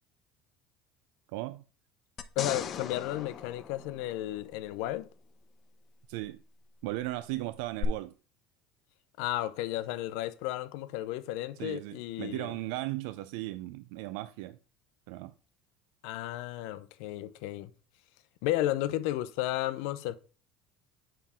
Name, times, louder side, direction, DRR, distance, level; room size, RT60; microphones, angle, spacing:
voice 1, 1.3-1.6 6.1-6.4 6.8-8.1 11.6-14.6 15.1-15.3, right 17 dB, 80° right, 0.3 m, -36 dB
sound 1, 2.2-4.7 7.8-7.9, left 8 dB, 40° left, 0.8 m, -38 dB
voice 2, 2.4-5.1 9.2-12.6 16.0-17.7 18.4-20.2, left 14 dB, 75° left, 0.6 m, -33 dB
7.3 x 5.6 x 3.5 m
supercardioid pair, 110°, 0 cm